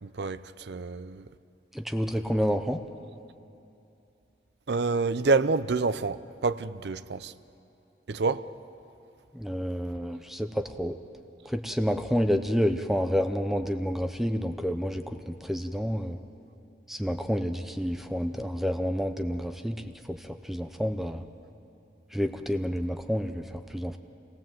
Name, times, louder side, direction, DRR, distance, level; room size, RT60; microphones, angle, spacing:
voice 1, 0.0-1.3 4.7-7.3 8.1-8.5, right 4 dB, 75° right, 0.6 m, -28 dB
voice 2, 1.7-2.8 9.3-11.0 11.4-16.2 16.9-21.2 22.1-24.0, equal, ahead, 0.6 m, -29 dB
26.0 x 19.5 x 7.7 m
head